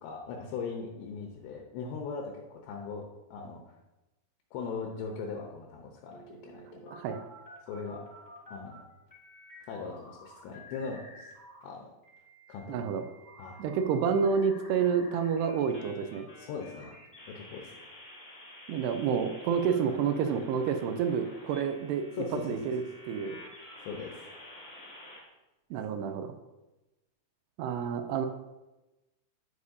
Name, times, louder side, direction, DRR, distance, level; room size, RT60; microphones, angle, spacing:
voice 1, 0.0-3.1 3.3-3.6 4.5-6.9 7.7-8.0 8.5-8.8 9.7-11.3 11.6-11.9 12.5-12.9 13.4-13.6 16.4-16.9 17.3-17.7 22.1-22.6 23.8-24.2, left 5 dB, 75° left, 1 dB, 2.9 m, -39 dB
sound 1, 6.1-8.8 9.1-11.7 12.0-25.2, left 1 dB, 20° left, 2.5 m, -51 dB
voice 2, 6.9-7.3 12.7-13.0 13.6-16.3 18.7-23.4 25.7-26.3 27.6-28.3, right 6 dB, 85° right, 8 dB, 2.4 m, -29 dB
9.8 x 8.2 x 2.7 m, 1.0 s
omnidirectional pair, 5.4 m